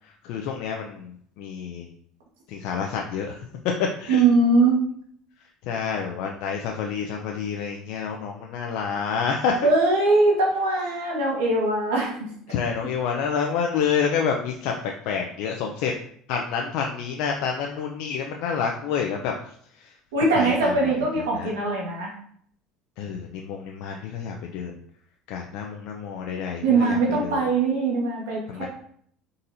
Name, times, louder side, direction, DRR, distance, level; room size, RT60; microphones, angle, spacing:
voice 1, 0.2-1.9 2.5-3.3 4.0-4.2 5.7-9.6 12.5-15.9 16.3-19.3 20.4-21.5 23.0-24.8 25.3-27.4 28.5-28.7, left 6 dB, 70° left, 1 dB, 0.5 m, -28 dB
voice 2, 4.1-4.8 9.6-12.1 20.1-22.1 26.6-28.7, right 3 dB, 90° right, -2 dB, 1.4 m, -21 dB
4.1 x 3.9 x 2.6 m, 0.62 s
supercardioid pair, 95°, 0 cm